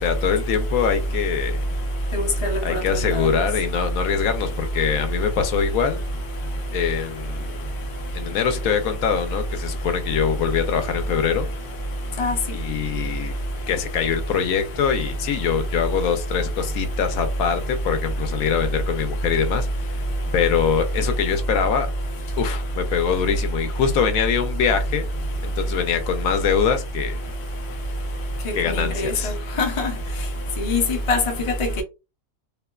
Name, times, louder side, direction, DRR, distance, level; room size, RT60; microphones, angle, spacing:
voice 1, 0.0-1.6 2.6-6.0 6.7-7.6 8.1-11.5 12.5-13.3 13.7-20.0 20.3-21.9 22.4-25.1 25.4-27.2 28.5-29.5, left 7 dB, 80° left, 1.0 m, -23 dB
voice 2, 29.6-29.9 30.6-31.2, left 3 dB, 45° left, 0.4 m, -22 dB
2.7 x 2.2 x 2.2 m
omnidirectional pair, 1.5 m